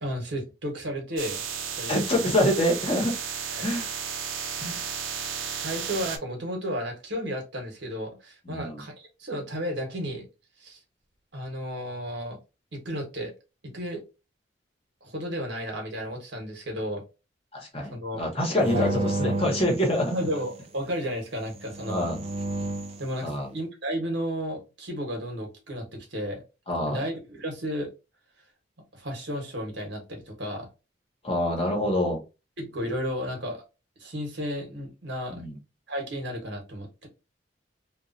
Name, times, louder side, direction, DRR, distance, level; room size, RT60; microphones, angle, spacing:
voice 1, 0.0-1.4 1.8-1.9 3.6-3.7 5.6-10.3 10.6-10.8 11.3-12.4 12.7-13.3 13.6-14.0 15.0-17.0 17.9-18.2 18.7-18.9 20.1-22.1 23.0-26.4 26.9-27.9 28.9-30.7 32.6-33.6 34.0-35.4 35.9-37.1, equal, 65° right, 1.1 m, -33 dB
sound 1, 1.2-6.2, right 7 dB, 90° right, 0.6 m, -33 dB
voice 2, 1.9-3.1 3.6-3.9 4.6-4.8 8.4-8.8 17.5-20.1 21.9-22.2 23.2-23.5 26.7-27.0 31.2-32.2 35.3-35.6, left 1 dB, 30° left, 1.0 m, -26 dB
sound 2, 18.6-20.6 21.6-23.1, right 2 dB, 30° right, 0.4 m, -31 dB
3.0 x 2.4 x 2.6 m
head